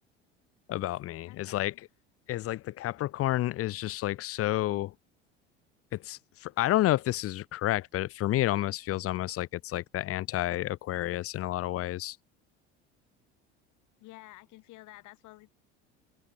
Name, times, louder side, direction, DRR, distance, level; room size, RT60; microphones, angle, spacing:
voice 1, 0.7-1.7 2.3-4.9 5.9-12.2, left 15 dB, 45° left, 0.7 m, -30 dB
voice 2, 1.3-1.8 14.0-15.5, left 19 dB, 60° left, 7.8 m, -51 dB
hypercardioid pair, 75°, 33 cm